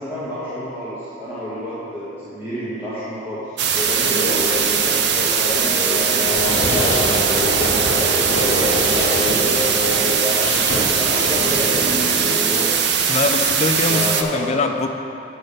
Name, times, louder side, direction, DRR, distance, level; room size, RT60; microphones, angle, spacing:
voice 1, 0.0-9.5 10.0-12.8 13.9-14.5, equal, 10° right, -11 dB, 1.2 m, -30 dB
sound 1, 3.6-14.2, right 7 dB, 55° right, 0.5 m, -20 dB
sound 2, 4.0-12.5, left 1 dB, 15° left, 0.8 m, -27 dB
Fireworks, 6.2-12.2, left 1 dB, 75° left, 1.2 m, -27 dB
voice 2, 13.1-14.9, left 3 dB, 35° left, 6 dB, 0.4 m, -22 dB
6.5 x 5.6 x 6.8 m, 2.7 s
head